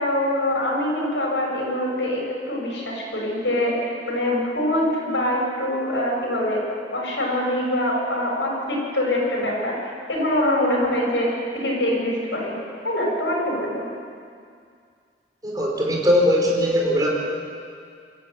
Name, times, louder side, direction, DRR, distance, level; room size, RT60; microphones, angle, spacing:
voice 1, 0.0-6.6 6.9-12.6 12.8-13.9, left 1 dB, 90° left, -2 dB, 7.4 m, -24 dB
voice 2, 15.4-17.1, equal, 20° right, -2 dB, 4.5 m, -20 dB
24.5 x 13.5 x 9.4 m, 2.2 s
head